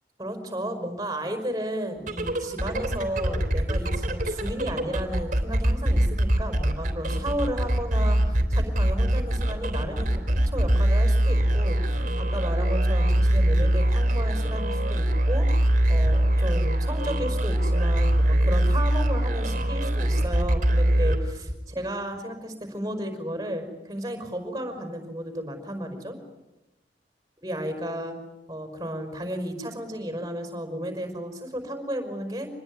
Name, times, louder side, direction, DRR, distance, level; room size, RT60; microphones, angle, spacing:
voice 1, 0.2-26.2 27.4-28.2 28.5-32.5, right 1 dB, 20° right, 6 dB, 5.3 m, -33 dB
sound 1, 2.0-21.7, right 1 dB, 45° right, 3.2 m, -23 dB
26.5 x 20.5 x 9.5 m, 1.0 s
head